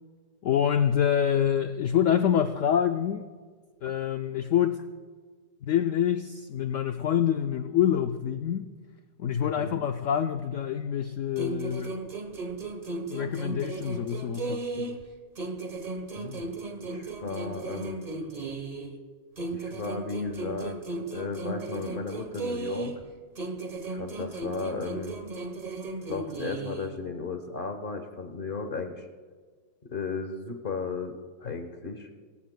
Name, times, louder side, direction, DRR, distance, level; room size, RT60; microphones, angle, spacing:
voice 1, 0.4-3.3 3.8-4.8 5.6-8.7 9.2-12.0 13.0-15.0 31.4-31.5, left 9 dB, 90° left, 7 dB, 0.6 m, -26 dB
voice 2, 9.4-9.7 16.1-16.5 16.8-18.0 19.5-23.0 23.9-25.1 26.1-29.1 29.9-32.1, left 4 dB, 35° left, 6 dB, 0.9 m, -35 dB
sound 1, 11.4-15.1 15.4-19.0 19.4-23.1 23.4-27.0, right 3 dB, 35° right, 0.7 m, -36 dB
25.0 x 14.0 x 2.2 m, 1.6 s
omnidirectional pair, 1.9 m